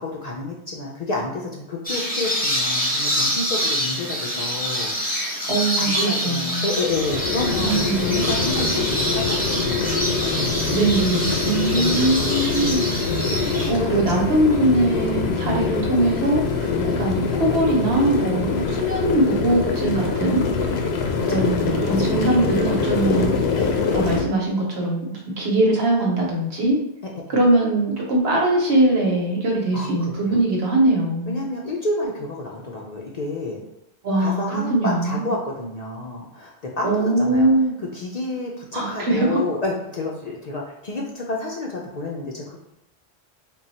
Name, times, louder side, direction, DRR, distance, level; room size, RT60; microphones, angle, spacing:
voice 1, 0.0-4.9 5.7-10.6 11.7-11.9 12.4-12.5 13.3-15.6 16.8-17.1 21.2-21.6 21.9-22.2 23.6-23.8 29.7-30.4 31.3-33.6 34.2-37.5 37.9-42.6, left 2 dB, 50° left, -2 dB, 0.5 m, -30 dB
sound 1, 1.8-13.7, equal, 10° left, 0.8 m, -26 dB
voice 2, 5.5-6.7 7.6-8.1 10.7-12.8 13.7-20.4 21.3-23.6 23.9-25.1 25.4-26.8 27.3-31.4 34.0-35.3 36.8-37.8 38.7-39.4, right 2 dB, 75° right, -1 dB, 1.2 m, -21 dB
sound 2, 6.8-24.2, left 4 dB, 75° left, 0.8 m, -24 dB
3.7 x 2.3 x 4.0 m, 0.81 s
omnidirectional pair, 1.1 m